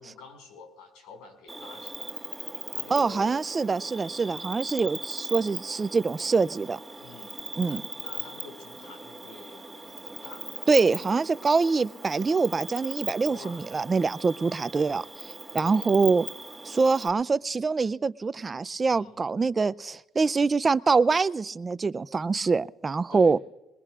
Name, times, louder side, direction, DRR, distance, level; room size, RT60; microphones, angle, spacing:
voice 1, 0.0-2.1 2.7-3.4 7.0-10.5 13.2-13.7 15.5-15.9 18.9-19.2 23.1-23.4, left 4 dB, 85° left, 5.2 m, -48 dB
Cricket, 1.5-17.1, right 2 dB, 5° right, 2.5 m, -39 dB
voice 2, 2.9-6.8 7.6-7.8 10.7-15.0 15.5-16.3 16.6-23.4, right 4 dB, 25° right, 0.4 m, -24 dB
21.5 x 21.5 x 2.4 m
cardioid pair, 105°, 0 cm